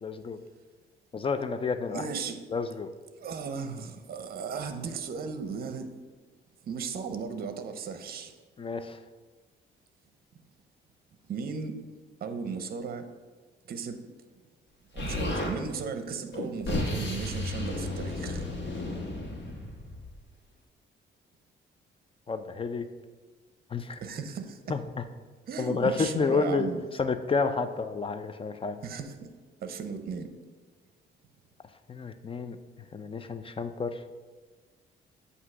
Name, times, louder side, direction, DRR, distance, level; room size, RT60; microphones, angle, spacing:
voice 1, 0.0-0.4 1.1-2.0 2.5-2.9 8.6-9.0 22.3-22.8 23.7-24.0 24.7-25.0 25.6-26.7 27.0-28.8 31.9-32.6 32.9-33.9, left 4 dB, 25° left, 10 dB, 0.5 m, -30 dB
voice 2, 1.9-2.4 3.2-5.9 6.7-8.3 11.3-11.8 12.2-13.1 13.7-14.0 14.9-18.5 24.0-24.7 25.5-26.8 28.8-29.3 29.6-30.3, right 5 dB, 50° right, 9 dB, 0.7 m, -36 dB
Explosion, 15.0-15.5 16.3-20.2, left 2 dB, 60° left, 1.4 m, -33 dB
8.1 x 2.8 x 6.1 m, 1.4 s
cardioid pair, 90°, 20 cm